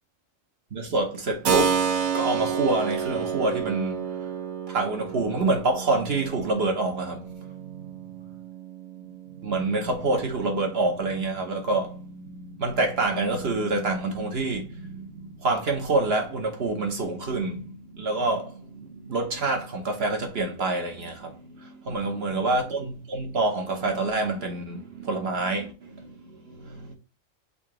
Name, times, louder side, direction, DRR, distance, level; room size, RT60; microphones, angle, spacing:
voice 1, 0.7-1.8 2.1-4.0 4.7-7.3 9.4-26.9, right 2 dB, 50° right, 1.1 m, -27 dB
Keyboard (musical), 1.4-10.1, right 7 dB, 85° right, 1.2 m, -30 dB
3.9 x 2.8 x 4.8 m
omnidirectional pair, 1.4 m